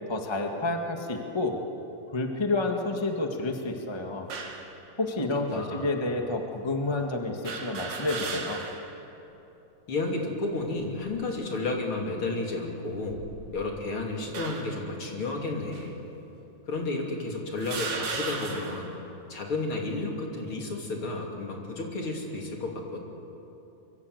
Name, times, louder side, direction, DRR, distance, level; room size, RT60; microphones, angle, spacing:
voice 1, 0.1-1.6 2.1-4.3 5.0-8.6, left 2 dB, 20° left, 2 dB, 0.7 m, -29 dB
sound 1, 4.3-4.7 5.5-5.6 7.4-8.9 9.3-9.4 10.6-11.0 11.7-12.0 12.9-13.7 14.3-14.8 15.7-15.9 16.7-16.8 17.6-18.9, right 4 dB, 85° right, 4.0 m, -36 dB
voice 2, 5.5-5.9 9.9-13.2 13.5-16.0 16.7-18.9 19.3-23.0, left 2 dB, 40° left, 0 dB, 3.5 m, -32 dB
24.5 x 23.5 x 8.0 m, 3.0 s
omnidirectional pair, 3.8 m